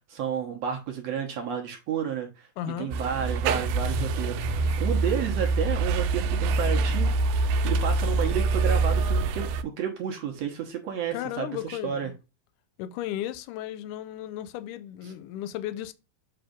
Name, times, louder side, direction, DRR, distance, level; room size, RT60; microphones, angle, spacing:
voice 1, 0.1-2.5 2.8-12.1 15.0-15.1, right 8 dB, 65° right, 1.7 m, -31 dB
voice 2, 2.6-3.0 11.1-12.1 12.8-15.9, left 12 dB, 80° left, 1.9 m, -35 dB
sound 1, 2.9-9.6, right 3 dB, 85° right, 2.4 m, -25 dB
8.0 x 3.2 x 5.0 m
omnidirectional pair, 4.1 m